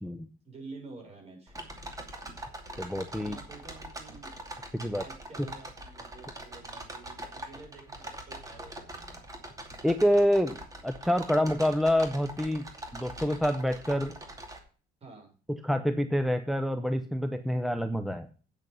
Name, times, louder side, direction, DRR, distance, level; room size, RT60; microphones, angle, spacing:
voice 1, 0.4-1.6 3.3-4.4 4.9-9.2 15.0-15.3, right 3 dB, 40° right, 1 dB, 6.7 m, -49 dB
sound 1, 1.5-14.6, right 1 dB, 20° right, 2.6 m, -43 dB
voice 2, 2.8-3.4 4.7-5.0 9.8-12.6 12.9-14.1 15.6-18.3, equal, ahead, 9 dB, 0.7 m, -27 dB
9.2 x 8.2 x 5.4 m, 0.38 s
cardioid pair, 110°, 17 cm